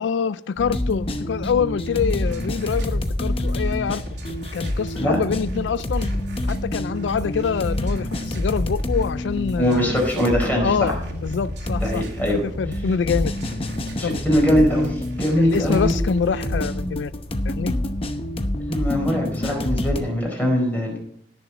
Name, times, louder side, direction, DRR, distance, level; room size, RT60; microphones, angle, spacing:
voice 1, 0.0-4.0 4.5-6.1 6.5-10.0 10.6-11.0 11.2-13.3 14.0-14.1 15.4-17.1 17.5-17.7, left 6 dB, 85° left, 16 dB, 0.4 m, -25 dB
sound 1, 0.6-20.0, left 1 dB, 30° left, 0.9 m, -27 dB
sound 2, 1.9-16.6, equal, 75° right, 2.5 m, -38 dB
voice 2, 9.6-10.9 11.8-12.4 14.0-15.9 18.7-21.0, equal, 10° left, -1 dB, 4.6 m, -22 dB
17.5 x 6.9 x 4.1 m, 0.69 s
head